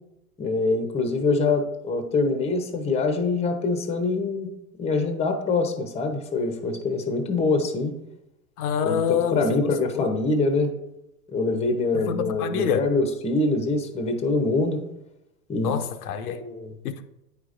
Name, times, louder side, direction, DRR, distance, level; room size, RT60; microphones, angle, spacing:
voice 1, 0.4-4.5 4.8-7.9 8.8-10.7 11.3-14.8 15.5-15.8 16.3-16.7, left 3 dB, 15° left, 0.7 m, -24 dB
voice 2, 8.6-9.6 9.9-10.1 11.9-12.8 15.6-16.4 16.8-17.0, left 8 dB, 65° left, 0.7 m, -26 dB
8.9 x 5.1 x 2.5 m
hypercardioid pair, 110°, 47 cm